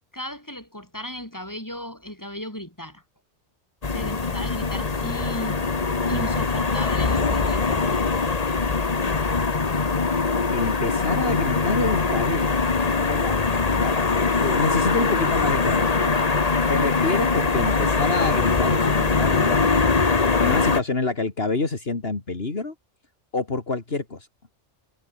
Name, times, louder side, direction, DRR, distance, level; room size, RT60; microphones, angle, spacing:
voice 1, 0.1-3.0 3.9-5.7 6.1-8.0, equal, 15° left, 7.1 m, -35 dB
sound 1, 3.8-20.8, left 4 dB, 35° left, 1.3 m, -22 dB
voice 2, 10.5-12.6 13.0-16.3 16.6-20.1 20.4-22.7 23.3-24.3, left 3 dB, 55° left, 2.9 m, -28 dB
omnidirectional pair, 1.2 m